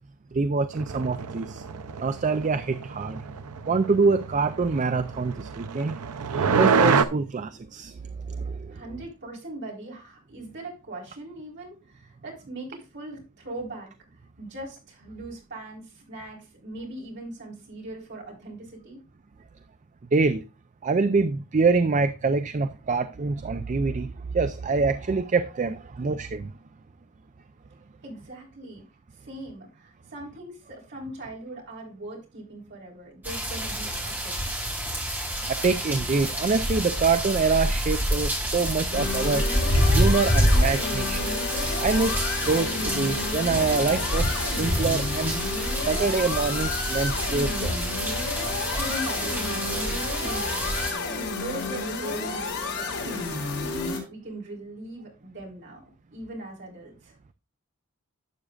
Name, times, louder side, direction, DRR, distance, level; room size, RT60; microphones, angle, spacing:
voice 1, 0.3-1.6 2.0-3.2 3.7-6.0 6.3-8.0 8.3-8.8 20.1-20.4 20.8-26.5 35.5-39.4 39.9-41.5 41.8-47.9, right 4 dB, 35° right, 0.4 m, -25 dB
sound 1, 0.7-7.0, right 5 dB, 90° right, 0.6 m, -27 dB
voice 2, 8.7-13.9 14.4-19.0 28.0-28.8 29.2-34.6 48.4-53.2 53.5-55.8 56.1-57.2, right 1 dB, 55° right, 3.9 m, -40 dB
sound 2, 33.2-50.9, equal, 10° right, 2.2 m, -27 dB
sound 3, 38.9-54.0, left 3 dB, 80° left, 4.2 m, -31 dB
12.0 x 7.6 x 2.4 m
head